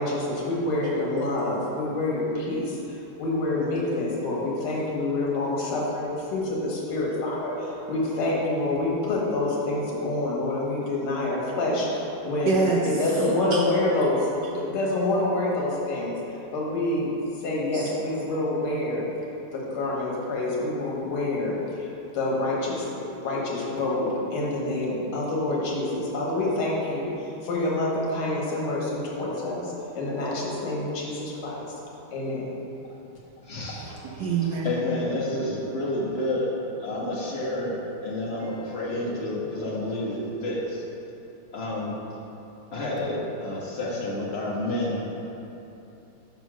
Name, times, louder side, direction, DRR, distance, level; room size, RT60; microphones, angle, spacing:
voice 1, 0.0-12.6 12.9-16.2 16.5-17.1 17.4-19.0 19.5-31.6 32.1-32.5, left 2 dB, 85° left, -4 dB, 2.1 m, -27 dB
voice 2, 12.5-12.9 13.5-13.6 14.5-14.6 17.7-17.9 18.3-18.5 33.5-34.7 38.4-38.8 39.6-40.0 45.2-45.3, right 4 dB, 75° right, -1 dB, 1.0 m, -29 dB
voice 3, 33.4-34.0 34.6-36.5 36.8-40.8 41.5-42.0 42.7-45.0, left 1 dB, 40° left, -5 dB, 1.1 m, -29 dB
5.3 x 4.5 x 6.1 m, 2.9 s
omnidirectional pair, 2.3 m